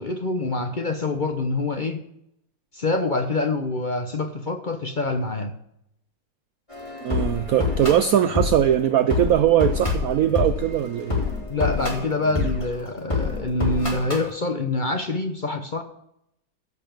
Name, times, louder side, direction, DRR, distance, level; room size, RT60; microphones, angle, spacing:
voice 1, 0.0-2.0 2.7-5.6 11.5-15.8, left 2 dB, 40° left, 0.7 m, -26 dB
sound 1, 6.7-14.3, left 4 dB, 15° left, 3.4 m, -27 dB
voice 2, 7.0-11.2, right 10 dB, 75° right, 0.8 m, -20 dB
15.5 x 5.6 x 7.1 m
omnidirectional pair, 2.0 m